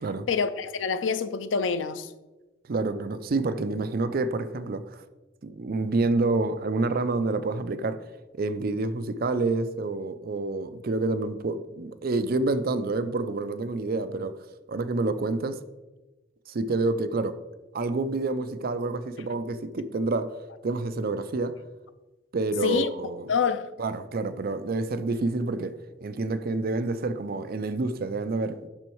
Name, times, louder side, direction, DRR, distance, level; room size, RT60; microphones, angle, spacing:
voice 1, 0.3-2.1 22.6-22.9 23.3-23.7, left 5 dB, 85° left, 0.5 m, -26 dB
voice 2, 2.7-5.0 5.4-8.0 8.3-14.4 14.7-15.6 16.5-17.4 17.7-20.3 20.6-21.5 22.3-23.3 23.8-25.7 26.0-28.7, right 3 dB, 50° right, 0.5 m, -28 dB
7.7 x 6.2 x 4.6 m
head